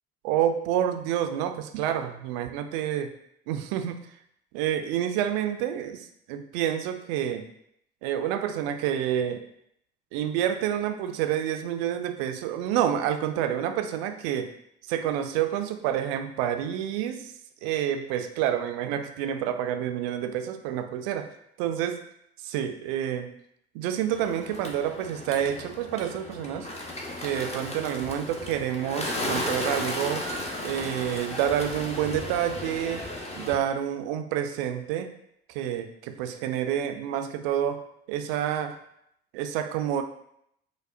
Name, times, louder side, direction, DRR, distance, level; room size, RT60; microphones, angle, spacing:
voice 1, 0.2-3.1 3.5-4.0 4.5-7.4 8.0-9.4 10.1-14.5 14.9-17.3 17.6-21.3 21.6-22.0 22.4-23.3 23.7-26.7 27.2-30.3 30.6-33.1 33.4-35.1 35.5-37.8 38.1-38.7 39.3-40.0, right 10 dB, 65° right, 7 dB, 0.4 m, -28 dB
Bird, 24.1-33.5, left 1 dB, 20° left, 0.7 m, -35 dB
5.0 x 2.1 x 2.4 m, 0.73 s
figure-of-eight pair, 55°, 32 cm